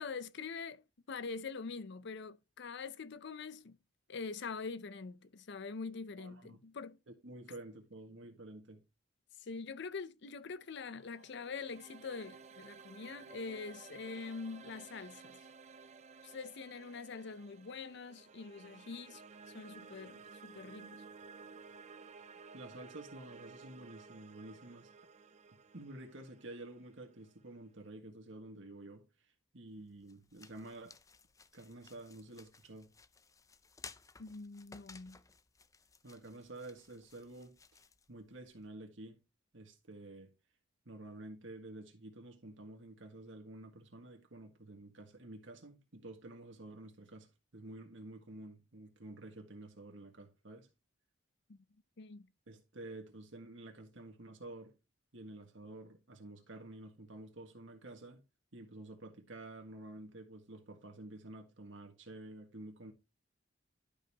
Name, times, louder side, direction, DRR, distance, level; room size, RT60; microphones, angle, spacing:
voice 1, 0.0-3.8 4.1-7.0 9.4-15.4 16.2-19.2 19.5-21.0 34.2-35.2 51.5-51.6 52.0-52.3, left 4 dB, 65° left, 0.6 m, -44 dB
voice 2, 6.2-6.6 7.1-8.8 22.5-24.9 25.7-29.1 29.5-30.9 31.5-32.9 36.0-37.6 38.1-39.2 39.5-40.3 40.8-47.3 47.5-50.7 52.5-54.7 55.1-58.2 58.5-62.9, right 2 dB, 75° right, 1.7 m, -50 dB
sound 1, 10.7-27.8, right 5 dB, 40° right, 0.6 m, -55 dB
sound 2, 29.7-38.7, left 5 dB, 15° left, 0.4 m, -58 dB
11.5 x 5.3 x 2.9 m
head